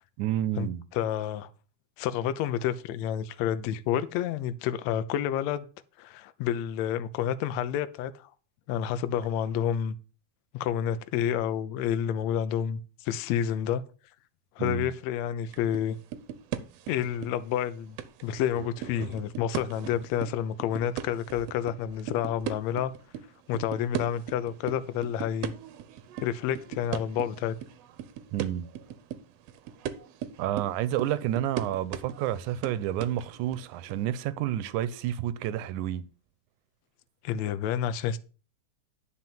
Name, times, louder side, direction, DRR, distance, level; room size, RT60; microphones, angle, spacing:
voice 1, 0.2-0.8 14.6-14.9 28.3-28.7 30.4-36.1, right 12 dB, 85° right, 2.1 m, -30 dB
voice 2, 0.9-1.5 2.0-5.7 6.0-8.3 8.7-10.0 10.5-13.8 14.6-16.0 16.9-18.0 18.2-22.9 23.5-25.5 26.2-27.6 37.2-38.2, left 9 dB, 75° left, 1.8 m, -29 dB
sound 1, 15.5-15.8 16.1-17.6 18.0-23.2 23.5-34.0, right 10 dB, 70° right, 1.6 m, -38 dB
10.5 x 4.1 x 7.4 m
omnidirectional pair, 3.5 m